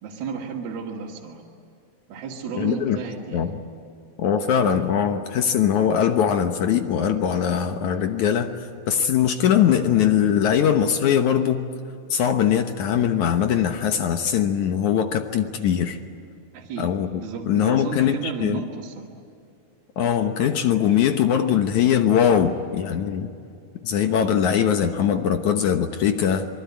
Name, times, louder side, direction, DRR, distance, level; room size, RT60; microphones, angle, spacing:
voice 1, 0.0-1.4 2.1-3.5 16.5-19.1, right 5 dB, 65° right, -4 dB, 3.9 m, -33 dB
voice 2, 2.6-3.0 3.3-3.5 4.2-11.6 12.1-16.0 16.8-17.2 17.5-18.6 20.0-23.3 23.8-26.5, left 8 dB, 70° left, 7 dB, 1.8 m, -21 dB
25.5 x 24.0 x 9.5 m, 2.5 s
omnidirectional pair, 4.9 m